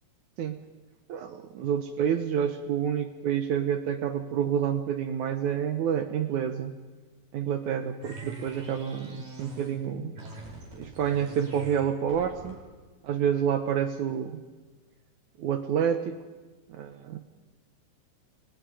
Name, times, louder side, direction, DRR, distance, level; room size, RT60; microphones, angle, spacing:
voice 1, 1.1-6.8 7.3-10.1 10.7-12.6 13.0-14.4 15.4-16.2 16.7-17.3, right 8 dB, 75° right, 8 dB, 1.8 m, -28 dB
sound 1, 8.0-9.8 10.2-12.7, right 2 dB, 55° right, 6.2 m, -43 dB
29.5 x 20.0 x 4.9 m, 1.3 s
omnidirectional pair, 4.6 m